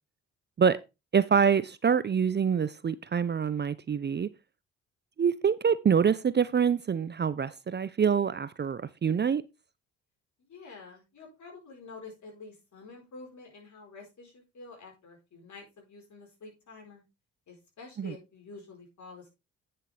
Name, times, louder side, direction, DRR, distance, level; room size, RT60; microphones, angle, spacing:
voice 1, 1.1-4.3 5.2-9.4 18.0-18.1, right 7 dB, 30° right, 0.6 m, -25 dB
voice 2, 10.4-17.0 17.5-19.3, left 3 dB, 55° left, 4.6 m, -48 dB
9.5 x 6.6 x 3.4 m
hypercardioid pair, 50°, 34 cm